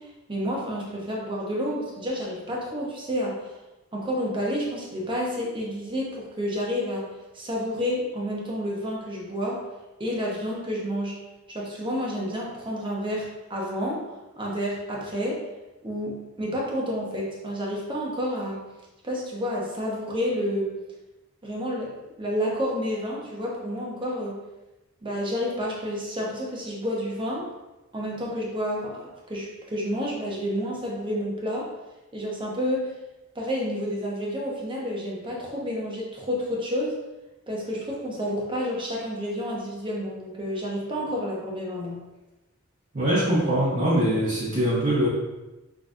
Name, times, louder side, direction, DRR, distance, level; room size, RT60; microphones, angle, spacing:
voice 1, 0.3-3.5 3.9-7.1 7.3-9.6 10.0-11.2 11.5-14.0 14.4-15.5 15.8-18.6 19.0-20.7 21.4-24.4 25.0-27.5 27.9-31.7 32.1-32.9 33.3-37.0 37.5-42.0, equal, 25° right, -3 dB, 1.0 m, -30 dB
voice 2, 42.9-45.1, right 1 dB, 45° right, -10 dB, 1.3 m, -22 dB
6.2 x 3.2 x 2.6 m, 1.0 s
head